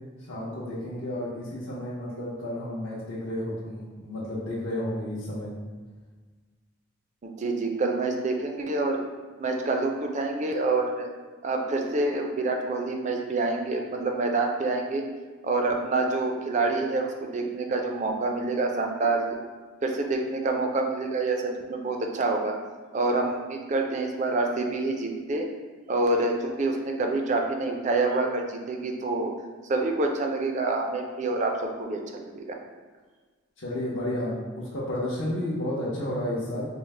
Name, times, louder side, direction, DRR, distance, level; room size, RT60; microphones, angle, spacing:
voice 1, 0.3-5.5 33.6-36.7, left 1 dB, 65° left, -9 dB, 0.7 m, -32 dB
voice 2, 7.2-9.0 9.4-11.1 11.4-15.0 15.4-19.3 19.8-22.5 22.9-25.4 25.9-29.3 29.7-31.5 31.8-32.5, right 3 dB, 35° right, 2 dB, 0.4 m, -27 dB
4.5 x 2.0 x 3.2 m, 1.4 s
head